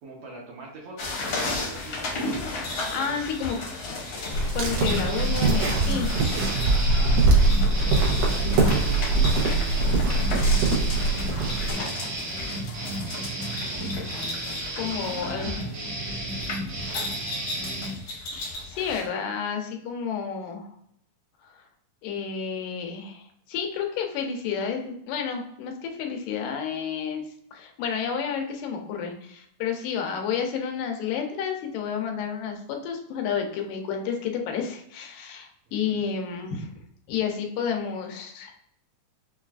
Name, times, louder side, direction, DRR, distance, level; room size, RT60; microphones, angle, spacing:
voice 1, 0.0-2.2 2.9-3.9 6.6-7.3 7.8-11.2 11.6-12.2 13.2-14.2 14.8-18.0 35.7-36.2, right 2 dB, 70° right, -3 dB, 1.8 m, -45 dB
sound 1, 1.0-19.1, left 2 dB, 65° left, 1.3 m, -34 dB
voice 2, 2.6-3.6 4.5-6.1 14.8-15.5 18.7-20.7 21.4-21.5 22.0-27.2 27.5-36.7 37.1-38.6, left 7 dB, 90° left, 3 dB, 2.4 m, -30 dB
sound 2, 4.3-11.7, right 3 dB, 90° right, 2.4 m, -22 dB
sound 3, 4.8-18.0, right 1 dB, 50° right, 1.3 m, -33 dB
6.0 x 2.4 x 2.3 m, 0.70 s
omnidirectional pair, 3.8 m